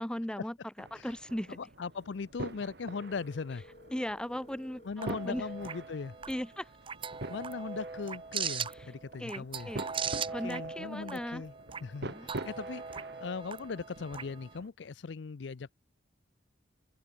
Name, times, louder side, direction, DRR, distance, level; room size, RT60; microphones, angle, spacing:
voice 1, 0.0-1.6 3.9-5.4 6.3-6.7 9.2-9.8 10.3-11.4 12.0-12.3, equal, 5° left, 0.5 m, -37 dB
sound 1, 0.8-14.7, right 2 dB, 60° right, 1.9 m, -46 dB
voice 2, 1.6-3.6 4.8-6.1 7.3-9.7 10.4-11.5 11.8-15.7, left 5 dB, 75° left, 0.5 m, -39 dB
Telephone, 2.9-4.9, left 2 dB, 35° left, 1.5 m, -55 dB
sound 2, 5.0-14.6, right 6 dB, 30° right, 0.8 m, -40 dB
open air
head